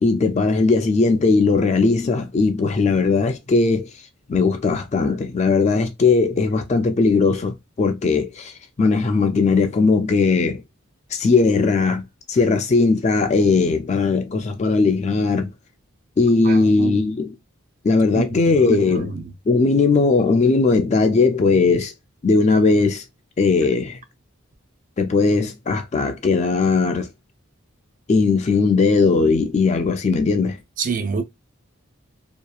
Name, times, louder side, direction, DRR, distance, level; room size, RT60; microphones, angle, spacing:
voice 1, 0.0-3.9 4.3-10.6 11.1-15.5 16.2-17.4 17.8-19.1 19.5-21.9 22.2-23.0 23.4-24.0 25.0-27.1 28.1-30.6, left 4 dB, 30° left, 0.3 m, -18 dB
voice 2, 16.4-17.0 18.1-19.3 30.8-31.2, right 5 dB, 40° right, 0.4 m, -28 dB
2.8 x 2.3 x 2.3 m
head